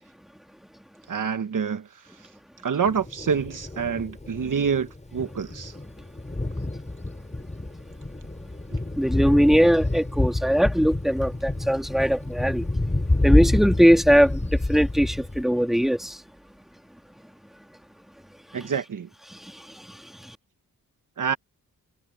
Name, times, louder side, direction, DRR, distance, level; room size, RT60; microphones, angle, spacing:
voice 1, 1.1-2.3 2.6-5.8 18.5-19.1 21.2-21.4, right 6 dB, 60° right, 1.3 m, -27 dB
Thunder, 2.8-15.4, left 2 dB, 20° left, 5.6 m, -28 dB
voice 2, 9.0-12.7 13.2-16.2, equal, ahead, 2.7 m, -20 dB
cardioid pair, 75°, 36 cm